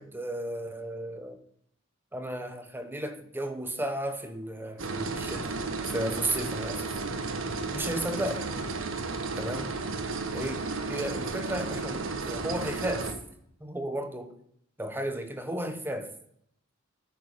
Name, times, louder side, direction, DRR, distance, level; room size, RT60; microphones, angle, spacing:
voice 1, 0.0-1.4 2.1-6.9 7.7-8.4 9.4-9.7 10.3-10.6 10.9-13.1 13.6-14.4 14.8-16.1, right 1 dB, 10° right, 8 dB, 1.0 m, -34 dB
sound 1, 4.8-13.1, right 3 dB, 70° right, 1.4 m, -33 dB
9.1 x 7.0 x 6.6 m, 0.70 s
head